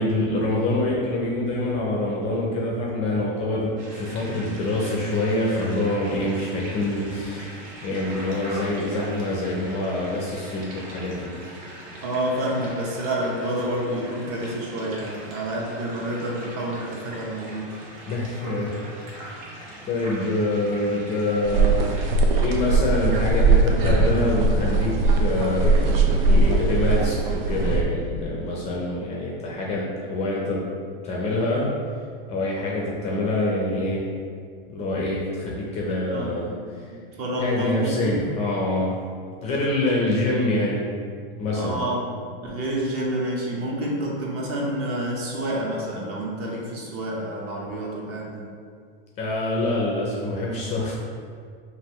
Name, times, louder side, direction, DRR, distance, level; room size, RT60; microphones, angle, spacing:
voice 1, 0.0-11.4 18.1-18.7 19.1-19.4 19.9-21.8 22.4-30.6 31.0-31.7 32.3-34.1 34.7-36.5 37.4-38.9 39.4-40.8 41.4-41.9 49.2-51.0, left 2 dB, 20° left, -3 dB, 0.5 m, -25 dB
sound 1, 3.8-22.1, right 1 dB, 50° right, 1.4 m, -41 dB
voice 2, 12.0-17.7 19.2-19.3 36.1-36.7 37.2-38.2 41.5-42.1 42.4-48.4, right 1 dB, 35° right, -2 dB, 0.8 m, -28 dB
sound 2, 21.4-27.8, right 3 dB, 70° right, 0.6 m, -20 dB
5.3 x 2.7 x 3.0 m, 2.1 s
supercardioid pair, 150°, 29 cm